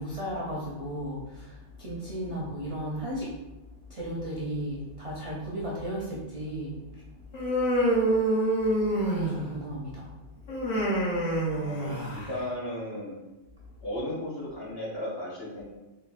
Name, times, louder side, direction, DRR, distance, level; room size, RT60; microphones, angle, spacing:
voice 1, 0.0-3.4 3.9-7.8 9.0-10.8 11.2-11.6, equal, 50° right, -5 dB, 0.4 m, -36 dB
Human voice, 7.3-9.6 10.5-12.3, right 1 dB, 75° left, 1.2 m, -26 dB
voice 2, 11.5-13.2 13.8-15.7, left 1 dB, 55° left, -7 dB, 1.3 m, -35 dB
3.8 x 2.1 x 2.4 m, 1.1 s
omnidirectional pair, 1.2 m